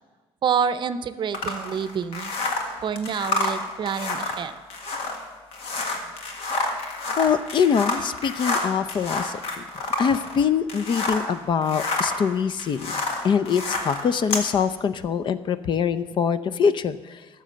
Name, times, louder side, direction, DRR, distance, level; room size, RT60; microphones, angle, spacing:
voice 1, 0.4-2.3 2.8-4.5, right 7 dB, 50° right, 14 dB, 0.6 m, -27 dB
sound 1, 1.3-11.3 11.6-14.5, left 2 dB, 75° left, 1.7 m, -29 dB
voice 2, 7.2-9.4 10.0-17.2, left 7 dB, 50° left, 13 dB, 0.6 m, -24 dB
12.5 x 6.9 x 7.5 m, 1.3 s
cardioid pair, 90°, 10 cm